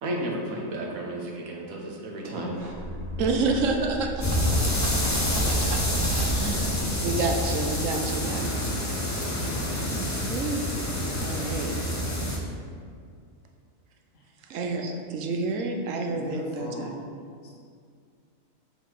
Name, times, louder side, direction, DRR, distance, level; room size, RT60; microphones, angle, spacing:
voice 1, 0.0-2.7, right 1 dB, 90° right, 0 dB, 1.4 m, -33 dB
sound 1, 2.5-7.4, right 2 dB, 30° right, 0.6 m, -36 dB
voice 2, 3.2-8.5 10.3-10.8 11.2-11.7 14.4-17.1, right 3 dB, 70° right, 4 dB, 1.0 m, -30 dB
sound 2, 4.2-12.4, left 1 dB, 15° left, 0.7 m, -27 dB
voice 3, 16.1-16.9 17.4-17.5, left 3 dB, 80° left, -5 dB, 1.5 m, -38 dB
7.1 x 4.5 x 3.8 m, 2.2 s
omnidirectional pair, 1.4 m